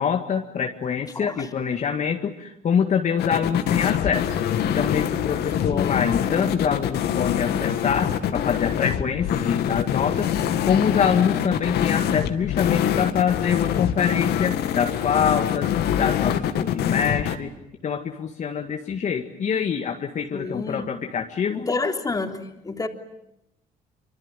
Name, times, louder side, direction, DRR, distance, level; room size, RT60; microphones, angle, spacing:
voice 1, 0.0-4.4 4.7-10.3 10.7-15.7 16.0-17.5 17.8-21.7, left 7 dB, 45° left, 3 dB, 2.0 m, -25 dB
sound 1, 3.2-17.4, left 10 dB, 75° left, 2.3 m, -24 dB
voice 2, 5.7-6.0 20.3-20.9 21.5-22.9, left 3 dB, 20° left, 5 dB, 3.4 m, -29 dB
25.5 x 25.5 x 9.2 m, 0.82 s
cardioid pair, 110°, 17 cm